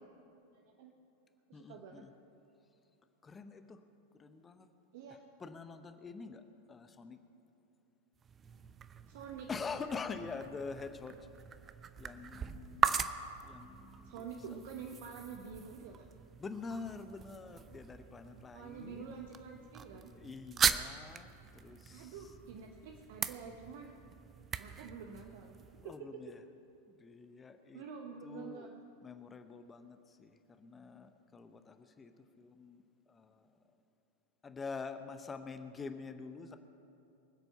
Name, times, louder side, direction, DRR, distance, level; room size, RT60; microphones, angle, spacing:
voice 1, 0.5-0.9 1.5-2.0 4.9-5.2 9.1-9.5 14.0-16.1 18.5-20.1 21.9-23.9 24.6-26.2 27.7-28.8, right 6 dB, 50° right, 3 dB, 1.0 m, -48 dB
voice 2, 1.5-2.1 3.2-3.8 4.2-4.7 5.4-6.4 6.7-7.2 9.5-11.1 12.0-13.1 13.4-14.3 16.4-19.2 20.1-22.2 25.8-26.4 27.0-27.8 28.2-28.7 29.0-32.1 32.4-32.8 33.1-33.4 34.4-36.6, left 4 dB, 15° left, 9 dB, 0.8 m, -45 dB
sound 1, 8.2-26.0, right 7 dB, 25° right, 0.5 m, -40 dB
24.0 x 8.0 x 5.7 m, 2.8 s
figure-of-eight pair, 90°, 0 cm